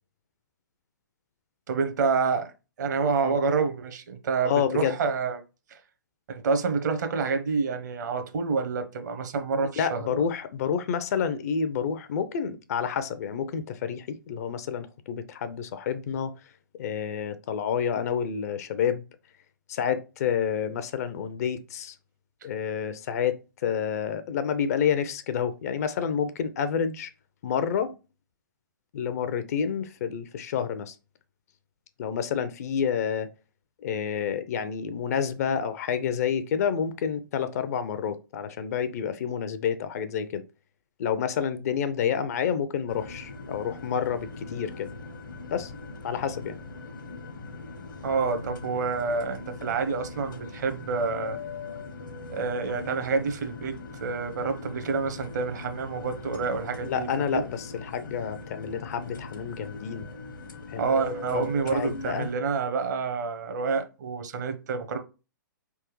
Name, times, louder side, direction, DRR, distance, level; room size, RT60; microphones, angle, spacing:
voice 1, 1.7-2.5 2.8-5.4 5.7-5.8 6.3-10.3 48.0-51.4 52.3-57.4 60.8-65.0, right 4 dB, 60° right, 0.9 m, -28 dB
voice 2, 4.4-5.0 9.8-16.3 16.8-19.0 19.7-22.0 22.4-27.1 27.4-27.9 28.9-31.0 32.0-33.3 33.8-40.4 41.0-44.9 45.5-45.7 46.0-46.6 56.8-60.1 60.7-60.9 61.3-62.3, left 7 dB, 50° left, 0.5 m, -29 dB
sound 1, 42.9-62.3, left 3 dB, 70° left, 0.9 m, -41 dB
4.6 x 3.5 x 3.0 m
figure-of-eight pair, 120°, 11 cm